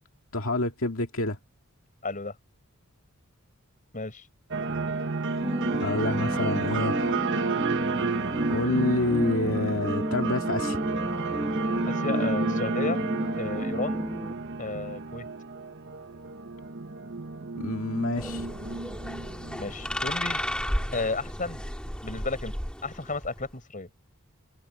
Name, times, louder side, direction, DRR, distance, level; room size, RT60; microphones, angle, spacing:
voice 1, 0.3-1.4 5.8-6.9 8.5-10.8 17.6-18.5, left 2 dB, 70° left, 2.3 m, -28 dB
voice 2, 2.0-2.3 3.9-4.2 11.9-13.1 13.4-14.1 14.6-15.3 19.6-20.4 20.9-21.6 22.0-22.5 22.8-23.9, left 3 dB, 40° left, 5.2 m, -33 dB
sound 1, 4.5-20.8, right 3 dB, 60° right, 1.2 m, -31 dB
sound 2, 5.4-14.3, equal, 10° right, 2.2 m, -32 dB
sound 3, 18.2-23.5, equal, 5° left, 3.9 m, -33 dB
head